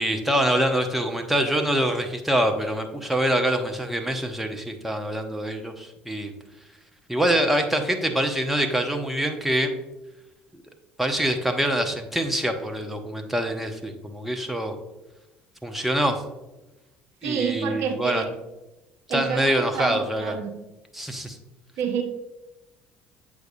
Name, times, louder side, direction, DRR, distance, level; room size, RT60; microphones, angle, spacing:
voice 1, 0.0-6.3 7.1-9.7 10.5-10.6 11.0-14.7 15.6-16.2 17.2-18.2 19.1-20.4 20.9-21.4, right 1 dB, 5° right, 4 dB, 0.9 m, -25 dB
voice 2, 17.2-18.3 19.1-20.5 21.8-22.0, right 7 dB, 60° right, 5 dB, 0.7 m, -28 dB
7.9 x 4.8 x 2.6 m, 1.0 s
hypercardioid pair, 60°, 5 cm